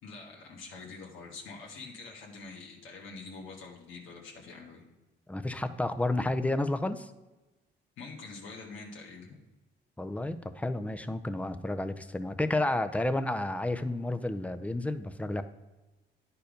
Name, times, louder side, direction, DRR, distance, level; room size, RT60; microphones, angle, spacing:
voice 1, 0.0-4.8 8.0-9.4, left 4 dB, 85° left, -2 dB, 1.6 m, -45 dB
voice 2, 5.3-7.1 10.0-15.4, left 2 dB, 5° left, 9 dB, 0.6 m, -31 dB
10.0 x 4.5 x 5.1 m, 1.1 s
cardioid pair, 90°, 20 cm